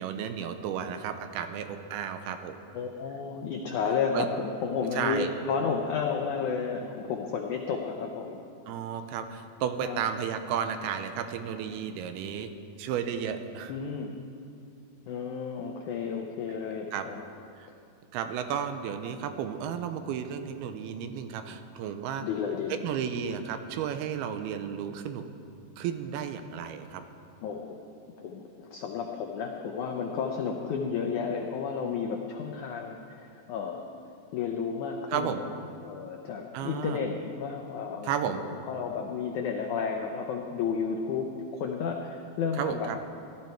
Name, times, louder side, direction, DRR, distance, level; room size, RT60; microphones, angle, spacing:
voice 1, 0.0-2.6 4.1-4.3 5.0-5.3 8.7-12.5 12.8-13.7 16.1-16.3 16.9-17.1 17.6-17.7 18.1-22.3 22.7-25.2 25.8-27.0 35.1-35.4 36.5-37.0 38.0-38.4 42.6-43.0, right 8 dB, 90° right, 8 dB, 2.6 m, -33 dB
voice 2, 2.7-8.4 9.8-10.0 13.7-14.1 15.1-17.2 22.2-22.8 27.4-27.8 28.2-33.8 34.3-35.5 35.8-41.3 41.5-42.9, left 6 dB, 85° left, 2 dB, 1.7 m, -32 dB
17.0 x 12.0 x 4.6 m, 2.5 s
omnidirectional pair, 4.5 m